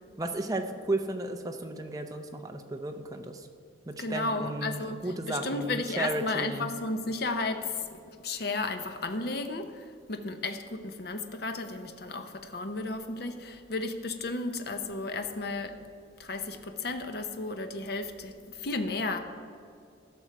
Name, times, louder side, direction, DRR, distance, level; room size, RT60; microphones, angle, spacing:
voice 1, 0.2-3.5 3.9-6.7, right 2 dB, 20° right, 4 dB, 0.6 m, -34 dB
voice 2, 4.0-7.9 8.2-15.8 16.2-19.2, left 3 dB, 55° left, 7 dB, 0.7 m, -33 dB
16.0 x 6.1 x 4.6 m, 2.5 s
head